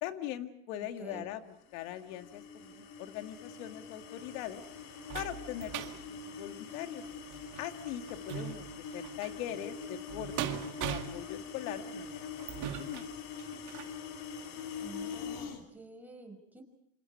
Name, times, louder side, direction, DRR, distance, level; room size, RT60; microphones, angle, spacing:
voice 1, 0.0-4.6 5.1-5.8 6.1-7.0 7.6-13.0, left 12 dB, 75° left, 7 dB, 2.1 m, -41 dB
voice 2, 1.0-1.3 14.8-16.6, right 3 dB, 5° right, 3 dB, 5.6 m, -49 dB
sound 1, 1.7-15.6, left 6 dB, 55° left, 3.8 m, -44 dB
sound 2, 4.1-14.0 14.5-14.7 15.0-15.1, right 11 dB, 50° right, 2.1 m, -42 dB
27.5 x 26.5 x 4.7 m, 0.72 s
supercardioid pair, 125°, 40 cm